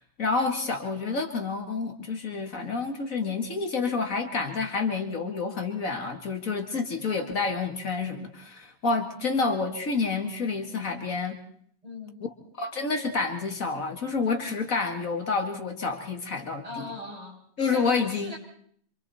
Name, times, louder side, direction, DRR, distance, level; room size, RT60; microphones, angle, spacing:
voice 1, 0.0-11.4 12.6-16.9 17.6-18.3, left 4 dB, 65° left, 4 dB, 2.3 m, -29 dB
voice 2, 11.8-12.2 16.6-18.4, left 2 dB, 25° right, -2 dB, 7.3 m, -40 dB
27.0 x 27.0 x 4.2 m, 0.62 s
omnidirectional pair, 1.5 m